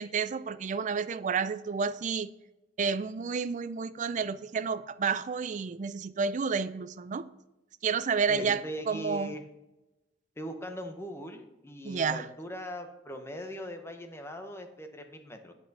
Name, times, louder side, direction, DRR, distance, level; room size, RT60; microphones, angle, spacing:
voice 1, 0.0-2.3 2.8-7.3 7.8-9.4 11.8-12.2, right 5 dB, 45° right, 14 dB, 0.4 m, -30 dB
voice 2, 8.3-9.4 10.4-15.5, equal, 15° left, 5 dB, 0.9 m, -40 dB
8.5 x 5.2 x 5.4 m, 0.98 s
head